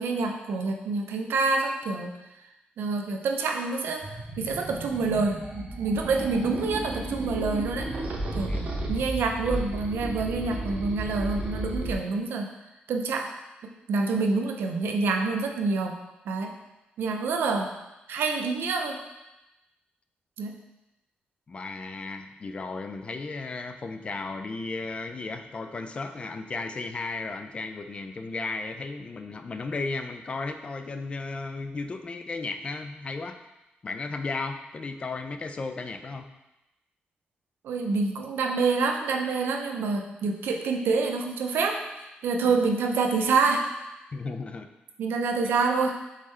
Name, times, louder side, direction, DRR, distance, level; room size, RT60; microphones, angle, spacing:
voice 1, 0.0-2.1 2.8-7.9 8.3-8.5 8.9-12.6 12.9-13.3 13.6-15.9 16.3-16.5 17.0-17.7 18.1-19.0 20.4-20.5 37.6-43.7 45.0-46.0, right 4 dB, 90° right, 3 dB, 0.5 m, -27 dB
sound 1, 4.0-11.9, right 1 dB, 50° right, 0.7 m, -33 dB
voice 2, 21.5-33.4 33.8-36.3 42.4-42.6 44.1-44.7, left 3 dB, 30° left, 7 dB, 0.3 m, -35 dB
4.1 x 3.7 x 3.2 m, 0.96 s
cardioid pair, 120°, 4 cm